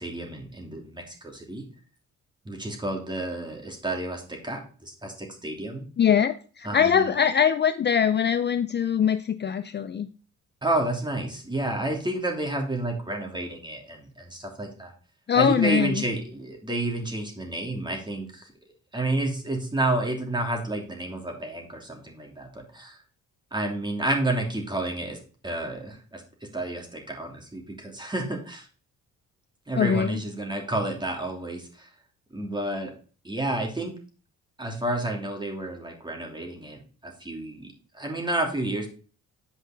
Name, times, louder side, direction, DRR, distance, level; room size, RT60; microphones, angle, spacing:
voice 1, 0.0-1.6 2.4-5.8 6.6-7.1 10.6-14.9 15.3-18.5 18.9-23.0 23.5-25.2 25.4-28.7 29.7-31.9 32.3-32.9 33.2-33.9 34.6-37.7 37.9-38.9, right 2 dB, 15° right, 2 dB, 2.8 m, -30 dB
voice 2, 6.0-10.1 15.3-16.0 29.7-30.2, left 8 dB, 35° left, 11 dB, 0.5 m, -22 dB
9.0 x 5.0 x 5.1 m, 0.39 s
cardioid pair, 90°, 30 cm